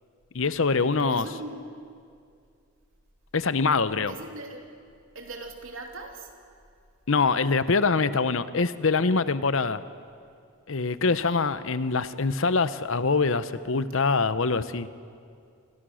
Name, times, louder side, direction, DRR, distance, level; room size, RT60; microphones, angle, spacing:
voice 1, 0.3-1.3 3.3-4.2 7.1-9.8 10.7-14.9, left 4 dB, 65° left, 14 dB, 0.8 m, -24 dB
voice 2, 1.0-1.7 4.1-4.6 5.1-6.3 11.3-11.4, right 2 dB, 65° right, 2 dB, 3.3 m, -39 dB
29.0 x 24.0 x 6.4 m, 2.3 s
head